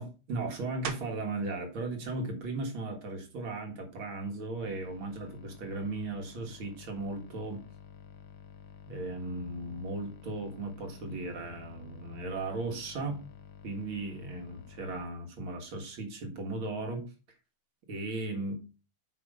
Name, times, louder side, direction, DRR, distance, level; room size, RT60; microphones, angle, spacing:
voice 1, 0.0-7.6 8.9-13.3 13.6-17.0 17.9-18.6, right 2 dB, 80° right, 2 dB, 2.5 m, -36 dB
sound 1, 0.8-1.4 2.0-6.4 6.9-12.1 12.4-18.0, right 6 dB, 65° right, 1.5 m, -51 dB
sound 2, 4.6-15.0, left 7 dB, 75° left, 1.8 m, -51 dB
5.9 x 4.9 x 5.3 m, 0.32 s
omnidirectional pair, 2.2 m